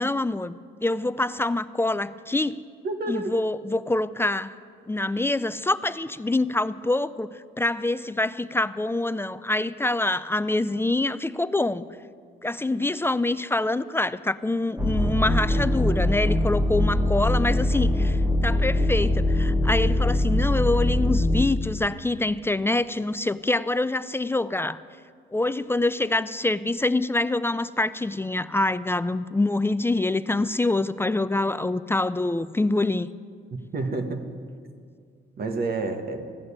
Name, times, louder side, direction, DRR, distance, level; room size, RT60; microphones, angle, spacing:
voice 1, 0.0-2.6 3.1-4.5 4.9-11.9 12.4-24.8 25.3-33.1, left 2 dB, 10° left, 15 dB, 0.3 m, -25 dB
voice 2, 2.8-3.4 33.5-34.2 35.4-36.3, right 3 dB, 50° right, 7 dB, 1.4 m, -29 dB
sound 1, 14.8-21.5, left 1 dB, 10° right, 1.3 m, -22 dB
15.0 x 6.5 x 9.9 m, 2.1 s
cardioid pair, 90°, 20 cm